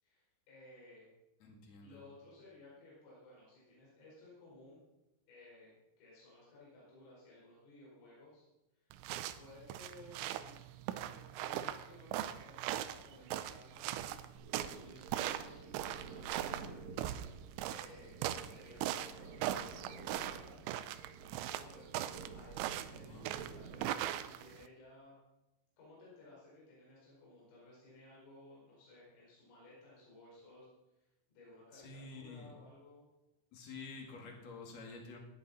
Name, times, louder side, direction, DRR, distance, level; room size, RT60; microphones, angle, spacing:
voice 1, 0.0-1.1 1.8-4.8 5.3-8.5 8.7-8.9 9.3-10.6 11.1-14.3 14.6-16.9 17.2-17.4 17.7-20.6 21.6-23.3 23.5-25.2 25.8-30.7 31.0-33.1, left 2 dB, 80° left, -6 dB, 7.4 m, -58 dB
voice 2, 1.4-2.0 22.9-23.4 31.7-32.5 33.5-35.2, left 3 dB, 45° left, 1 dB, 2.6 m, -50 dB
sound 1, 8.9-24.7, right 12 dB, 80° right, 2.9 m, -40 dB
sound 2, 14.4-24.0, right 4 dB, 50° right, 2.5 m, -52 dB
22.5 x 9.3 x 4.2 m, 0.97 s
omnidirectional pair, 5.6 m